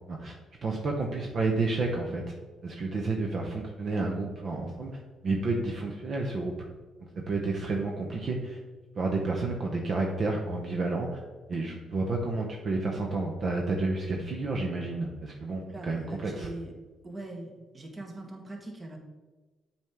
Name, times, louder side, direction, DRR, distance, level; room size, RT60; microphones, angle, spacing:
voice 1, 0.6-2.3 2.6-6.5 7.1-8.6 9.0-11.2 11.5-16.5, right 3 dB, 50° right, 1 dB, 0.9 m, -30 dB
voice 2, 15.7-16.7 17.0-19.0, right 2 dB, 30° right, 2 dB, 1.3 m, -41 dB
7.3 x 4.4 x 3.6 m, 1.3 s
cardioid pair, 90°, 0 cm